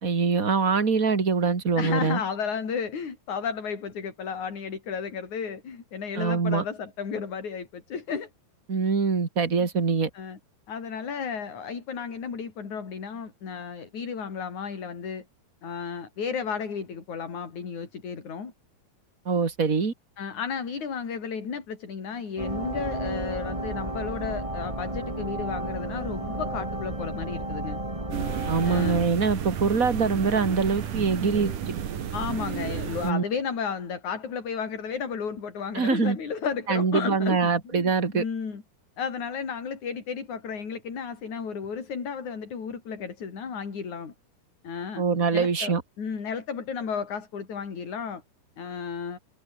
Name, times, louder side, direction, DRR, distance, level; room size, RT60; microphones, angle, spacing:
voice 1, 0.0-2.2 6.2-6.6 8.7-10.1 19.3-19.9 28.5-31.5 33.0-33.2 35.7-36.2 36.7-38.2 45.0-45.8, right 5 dB, 25° right, 2.4 m, -24 dB
voice 2, 1.8-8.3 10.1-10.4 10.7-15.2 15.6-18.5 20.2-27.8 28.6-29.0 32.1-38.6 39.0-44.1 44.6-45.0 45.3-48.2 48.6-49.2, left 6 dB, 55° left, 5.4 m, -33 dB
sound 1, 22.4-29.1, right 1 dB, 10° right, 3.3 m, -32 dB
sound 2, 28.1-33.1, right 8 dB, 65° right, 3.7 m, -32 dB
omnidirectional pair, 4.1 m